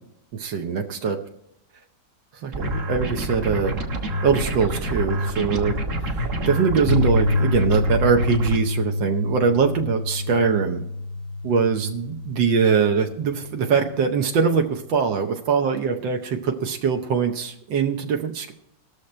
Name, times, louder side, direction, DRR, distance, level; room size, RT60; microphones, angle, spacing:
voice 1, 0.3-1.2 2.3-3.8 4.2-5.8 6.0-10.8 11.4-18.5, right 6 dB, 85° right, 4 dB, 1.6 m, -22 dB
sound 1, 2.5-8.6, equal, 45° right, 1.5 m, -27 dB
Piano, 6.9-15.0, left 3 dB, 70° left, 1.0 m, -27 dB
19.0 x 6.6 x 4.3 m, 0.77 s
omnidirectional pair, 2.0 m